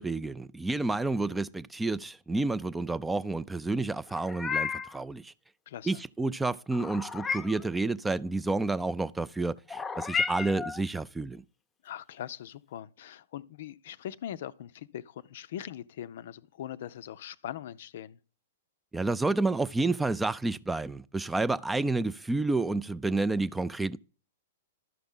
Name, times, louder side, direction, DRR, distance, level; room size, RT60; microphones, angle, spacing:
voice 1, 0.0-5.3 5.9-11.4 18.9-24.0, right 2 dB, 10° right, 0.3 m, -30 dB
Meow, 4.1-5.0 6.7-7.7 9.7-10.8, left 5 dB, 15° left, 0.7 m, -33 dB
voice 2, 5.7-6.0 11.8-18.2, left 11 dB, 60° left, 0.4 m, -41 dB
12.0 x 5.9 x 3.7 m
hypercardioid pair, 110°, 0 cm